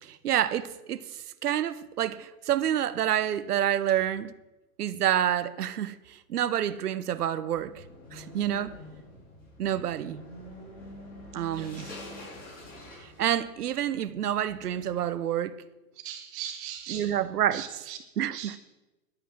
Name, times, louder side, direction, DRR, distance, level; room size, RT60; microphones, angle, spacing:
voice 1, 0.0-4.3 4.8-7.8 8.1-8.7 9.6-10.2 11.3-11.9 13.0-15.6 16.9-17.7 18.2-18.6, right 11 dB, 80° right, 1.1 m, -28 dB
sound 1, 7.5-15.1, left 1 dB, 20° left, 6.0 m, -46 dB
voice 2, 11.5-11.9 16.0-17.2 17.5-18.0 18.3-18.6, right 10 dB, 30° right, 1.9 m, -40 dB
11.0 x 9.0 x 9.0 m
hypercardioid pair, 150°, 45 cm